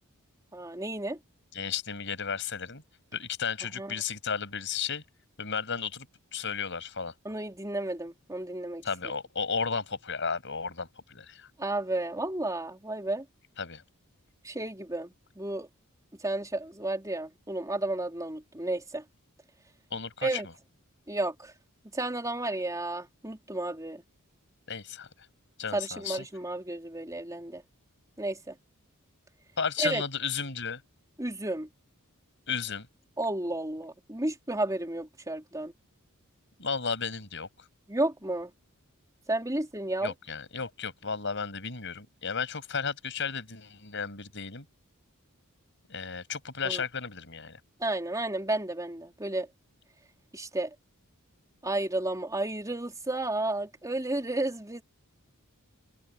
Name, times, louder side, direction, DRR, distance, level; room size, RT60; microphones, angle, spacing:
voice 1, 0.5-1.2 3.8-3.9 7.2-8.8 11.6-13.2 14.4-15.7 16.2-19.0 20.2-20.5 21.1-21.5 21.9-24.0 25.7-27.6 28.2-28.5 29.8-30.0 31.2-31.7 33.2-35.7 37.9-38.5 39.3-40.1 46.6-46.8 47.8-49.5 50.3-50.7 51.6-54.8, right 2 dB, 15° right, 3.8 m, -32 dB
voice 2, 1.5-2.8 3.1-5.0 5.4-6.1 6.3-7.1 8.8-11.5 13.6-13.8 19.9-20.4 24.7-25.1 25.6-26.2 29.6-30.8 32.5-32.9 36.6-37.5 40.0-44.6 45.9-47.6, left 6 dB, 55° left, 6.5 m, -33 dB
head